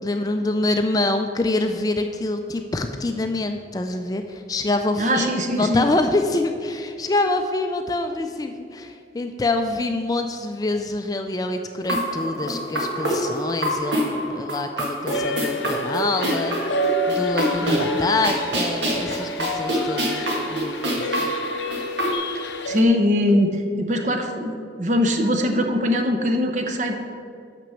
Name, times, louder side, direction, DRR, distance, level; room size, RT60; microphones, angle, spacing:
voice 1, 0.0-21.3, left 2 dB, 20° left, 6 dB, 0.3 m, -26 dB
voice 2, 5.0-5.9 17.7-18.0 22.4-26.9, left 1 dB, 40° right, 4 dB, 0.7 m, -22 dB
sound 1, 11.8-22.1, equal, 85° right, 1.7 m, -26 dB
sound 2, 15.1-22.8, left 1 dB, 80° left, 0.6 m, -29 dB
6.0 x 6.0 x 6.9 m, 2.3 s
head